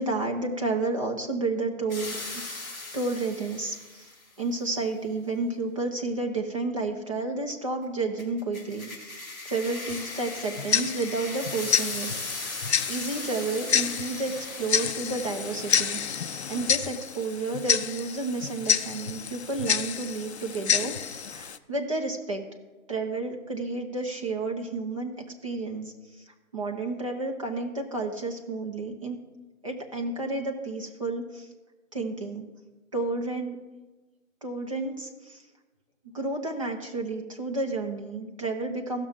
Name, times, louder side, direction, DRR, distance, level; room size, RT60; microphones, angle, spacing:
voice 1, 0.0-2.6 2.9-4.1 4.4-12.1 12.9-16.2 16.5-22.4 22.9-25.1 25.4-26.2 26.5-29.2 29.6-31.5 31.9-32.5 32.9-33.6 34.4-35.4 36.1-39.1, right 3 dB, 25° right, 0 dB, 0.9 m, -31 dB
sound 1, 1.9-4.2 8.2-17.1, left 3 dB, 15° left, 2.3 m, -39 dB
Tick-tock, 9.9-21.6, left 7 dB, 55° left, 0.5 m, -29 dB
16.0 x 6.2 x 3.6 m, 1.2 s
hypercardioid pair, 175°, 40 cm